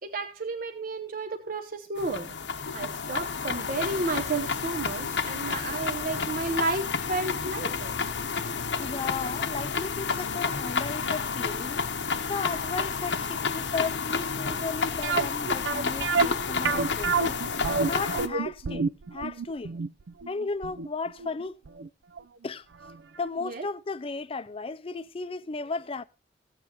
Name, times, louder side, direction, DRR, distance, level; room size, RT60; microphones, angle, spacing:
voice 1, 0.0-2.3 2.7-8.0 23.4-23.7, right 3 dB, 50° right, 0.8 m, -32 dB
sound 1, 2.0-18.3, left 5 dB, 90° left, 0.9 m, -30 dB
voice 2, 8.8-11.8 12.3-17.4 17.9-18.8 19.1-19.7 20.3-21.6 22.4-22.7 23.2-26.0, left 4 dB, 30° left, 0.5 m, -35 dB
sound 2, 15.0-21.9 22.2-22.3 22.8-23.0 23.2-23.3, right 5 dB, 80° right, 0.5 m, -28 dB
15.5 x 7.8 x 2.9 m
head